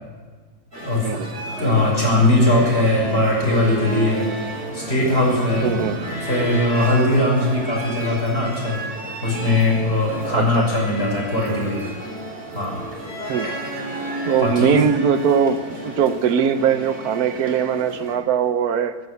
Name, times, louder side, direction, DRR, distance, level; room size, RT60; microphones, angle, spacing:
sound 1, 0.7-18.2, right 1 dB, 35° right, 3.8 m, -32 dB
voice 1, 1.0-1.7 5.6-6.0 7.1-7.2 10.3-10.6 13.3-13.5 14.2-15.6 15.8-19.0, right 7 dB, 80° right, 11 dB, 1.3 m, -21 dB
voice 2, 1.6-4.3 4.7-5.8 6.2-8.8 9.2-11.9 12.5-12.8 14.4-14.8, left 1 dB, 40° left, -3 dB, 6.3 m, -20 dB
15.5 x 12.0 x 7.9 m, 1.5 s
omnidirectional pair, 1.6 m